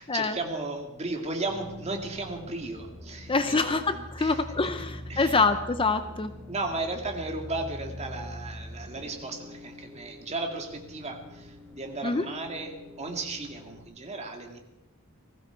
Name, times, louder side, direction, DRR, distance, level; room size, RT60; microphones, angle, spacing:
voice 1, 0.0-4.4 5.1-5.5 6.1-6.2 6.5-14.6, right 2 dB, 30° right, 3 dB, 2.1 m, -35 dB
sound 1, 1.5-13.8, equal, ahead, 2.8 m, -44 dB
voice 2, 3.3-6.3 12.0-12.3, left 3 dB, 25° left, 10 dB, 0.6 m, -25 dB
19.5 x 15.5 x 4.6 m, 0.97 s
head